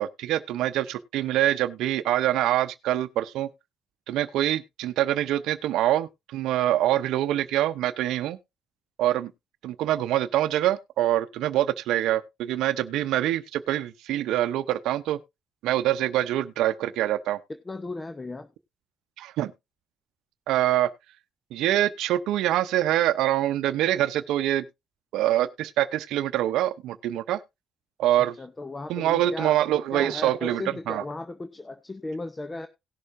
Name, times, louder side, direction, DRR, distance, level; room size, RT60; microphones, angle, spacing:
voice 1, 0.0-3.5 4.1-8.4 9.0-9.3 9.6-15.2 15.6-17.4 19.2-19.5 20.5-20.9 21.5-24.6 25.1-27.4 28.0-28.3 28.9-31.0, right 13 dB, 90° right, 0.6 m, -25 dB
voice 2, 17.5-18.5 28.2-29.6 29.9-32.7, left 2 dB, 20° left, 0.7 m, -36 dB
18.0 x 6.5 x 2.6 m
cardioid pair, 90°, 0 cm